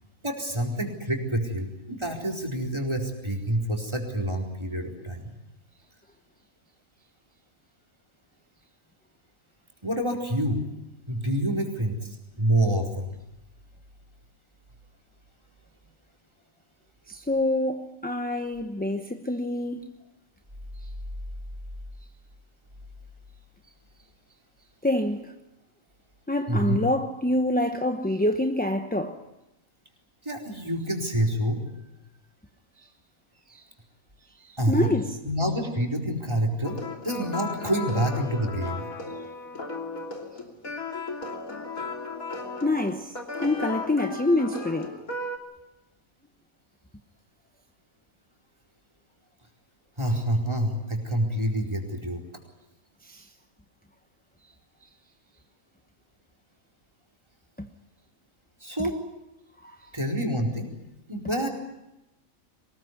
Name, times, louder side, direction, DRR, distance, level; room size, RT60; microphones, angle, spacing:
voice 1, 0.2-5.3 9.8-10.6 11.1-13.1 26.5-26.8 30.2-31.6 34.6-35.0 35.2-36.8 37.0-38.9 50.0-52.2 58.6-59.0 59.9-60.7 61.1-61.5, right 1 dB, 20° right, 4.4 m, -27 dB
voice 2, 17.1-19.9 24.8-25.3 26.3-29.2 32.8-32.9 33.5-33.6 34.4-35.2 42.6-45.0 53.0-53.3 54.8-54.9 57.6-57.7 58.8-58.9 59.6-59.9, left 1 dB, 10° left, 0.9 m, -26 dB
sound 1, 36.6-45.4, left 3 dB, 85° left, 3.5 m, -35 dB
23.5 x 20.5 x 9.4 m
omnidirectional pair, 1.4 m